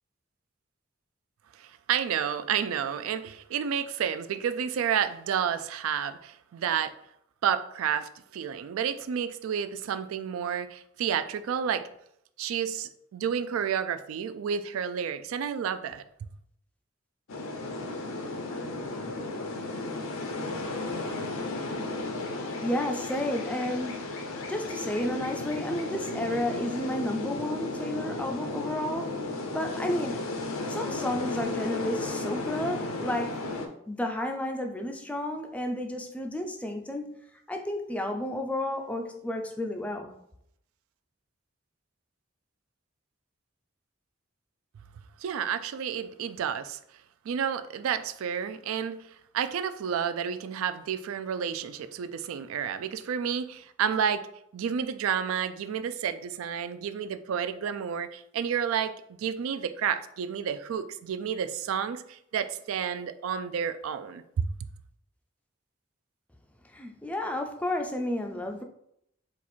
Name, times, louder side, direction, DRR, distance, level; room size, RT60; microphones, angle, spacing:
voice 1, 1.6-6.9 7.4-11.9 12.4-16.0 45.2-46.8 47.3-49.1 49.3-54.2 54.5-58.9 59.2-64.5, right 8 dB, 90° right, 11 dB, 0.3 m, -30 dB
sound 1, 17.3-33.7, left 2 dB, 85° left, 0.6 m, -34 dB
voice 2, 22.6-24.0 24.5-29.2 29.5-30.4 30.7-33.5 33.9-40.1 66.7-68.6, left 1 dB, 5° left, 4 dB, 0.3 m, -32 dB
4.1 x 2.4 x 4.3 m, 0.73 s
head